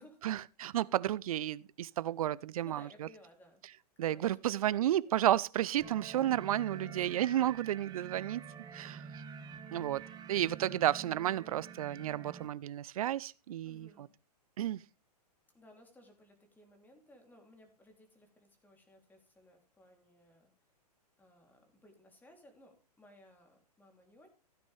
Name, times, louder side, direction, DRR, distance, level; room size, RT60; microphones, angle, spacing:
voice 1, 0.0-3.1 4.0-8.4 8.7-9.1 9.7-10.0 10.3-14.1 14.6-14.8, right 12 dB, 60° right, 0.6 m, -32 dB
voice 2, 2.6-3.6 4.0-5.3 5.8-5.9 6.8-7.4 13.6-14.1 15.5-20.5 21.2-24.3, left 1 dB, 10° left, 3.2 m, -60 dB
sound 1, 5.8-12.5, right 7 dB, 20° right, 1.4 m, -48 dB
15.5 x 9.4 x 3.4 m
hypercardioid pair, 120°, 21 cm